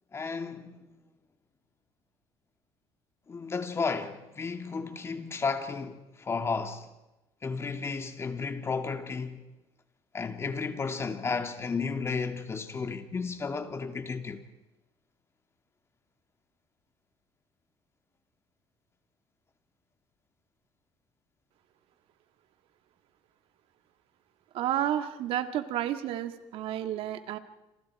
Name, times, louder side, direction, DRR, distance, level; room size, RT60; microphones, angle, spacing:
voice 1, 0.1-0.9 3.3-6.0 6.3-6.8 7.4-9.4 10.1-14.4, left 4 dB, 25° left, 2.4 m, -33 dB
voice 2, 24.5-27.4, right 11 dB, 70° right, 2.0 m, -31 dB
29.0 x 26.5 x 4.8 m
cardioid pair, 110°, 10 cm